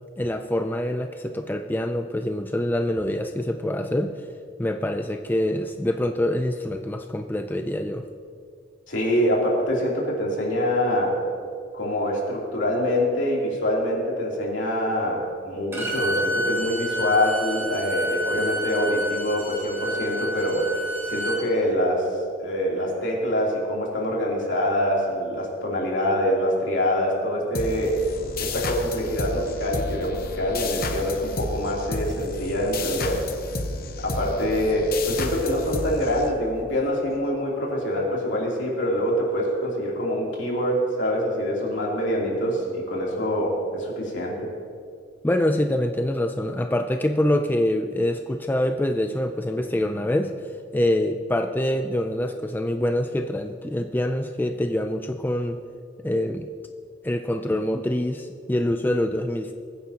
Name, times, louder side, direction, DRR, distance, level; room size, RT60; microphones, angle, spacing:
voice 1, 0.2-4.1 4.6-8.1 45.2-50.4 50.7-55.6 56.0-56.5 57.0-59.5, left 1 dB, 10° left, 6 dB, 0.3 m, -25 dB
voice 2, 8.9-11.1 11.7-20.7 21.1-22.1 22.4-28.0 28.4-33.2 34.0-44.4, equal, 70° left, -4 dB, 3.1 m, -25 dB
Bowed string instrument, 15.7-21.4, equal, 15° right, 3.1 m, -29 dB
sound 1, 27.5-36.8, left 3 dB, 50° left, 0.9 m, -32 dB
21.5 x 9.4 x 2.9 m, 2.3 s
head